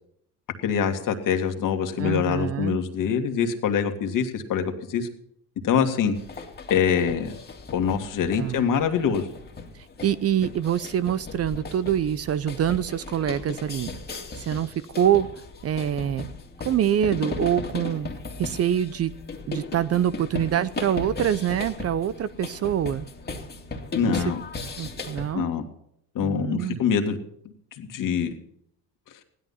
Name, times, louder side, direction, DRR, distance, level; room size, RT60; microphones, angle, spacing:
voice 1, 0.6-5.1 5.6-6.1 6.7-7.4 7.7-9.3 23.9-24.4 25.3-25.6 26.1-27.2 27.8-28.3, left 7 dB, 55° left, 5 dB, 2.3 m, -24 dB
voice 2, 2.0-2.8 8.4-8.6 10.0-13.9 14.4-15.3 15.6-16.3 16.6-18.1 18.4-19.1 19.5-23.1 24.0-24.4 24.8-25.5 26.2-26.8, right 10 dB, 40° right, 17 dB, 0.7 m, -25 dB
sound 1, 6.2-25.3, left 3 dB, 25° left, 2.5 m, -37 dB
16.0 x 11.5 x 5.6 m, 0.71 s
supercardioid pair, 100°, 38 cm